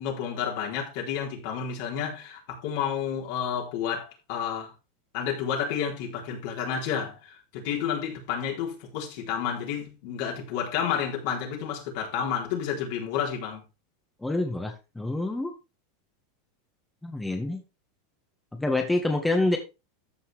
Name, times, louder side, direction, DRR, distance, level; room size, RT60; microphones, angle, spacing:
voice 1, 0.0-4.7 5.1-13.6, left 8 dB, 60° left, 4.0 m, -30 dB
voice 2, 14.2-15.5 17.0-17.6 18.5-19.6, left 2 dB, 5° left, 1.8 m, -27 dB
14.0 x 5.6 x 3.5 m
hypercardioid pair, 120°, 0 cm